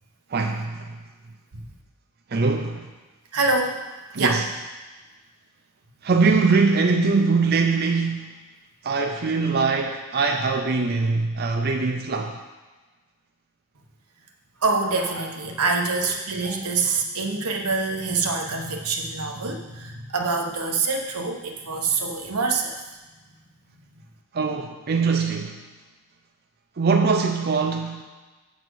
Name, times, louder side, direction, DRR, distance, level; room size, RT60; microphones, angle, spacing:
voice 1, 0.3-1.0 2.3-2.9 4.1-4.4 6.0-8.3 8.8-12.4 24.3-25.6 26.8-28.0, right 4 dB, 45° right, 3 dB, 0.5 m, -22 dB
voice 2, 3.3-3.8 4.1-4.4 14.6-22.8, right 3 dB, 90° right, 2 dB, 1.0 m, -25 dB
7.9 x 4.2 x 6.2 m, 1.2 s
head